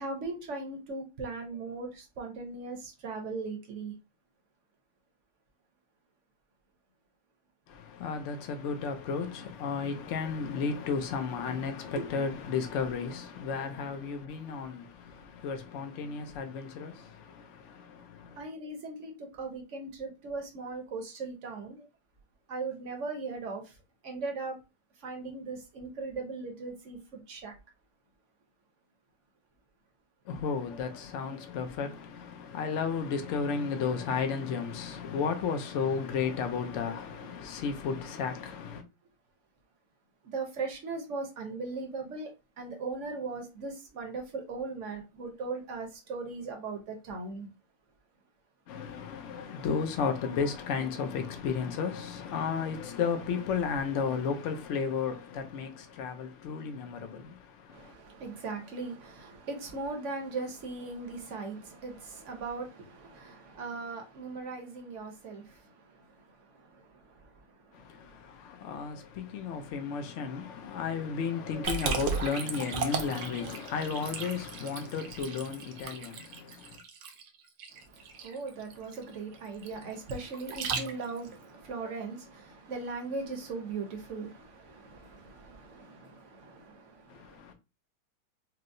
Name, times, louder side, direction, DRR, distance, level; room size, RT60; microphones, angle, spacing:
voice 1, 0.0-3.9 12.0-12.1 18.4-21.9 22.5-23.8 24.0-24.6 25.0-27.5 40.2-47.5 57.7-68.1 77.7-87.5, right 3 dB, 55° right, 0.9 m, -39 dB
voice 2, 7.7-18.4 30.3-38.8 48.7-57.9 67.7-76.8 87.1-87.5, left 6 dB, 80° left, 0.6 m, -33 dB
Liquid, 71.6-81.3, right 6 dB, 75° right, 1.2 m, -36 dB
4.5 x 2.0 x 2.5 m
omnidirectional pair, 1.9 m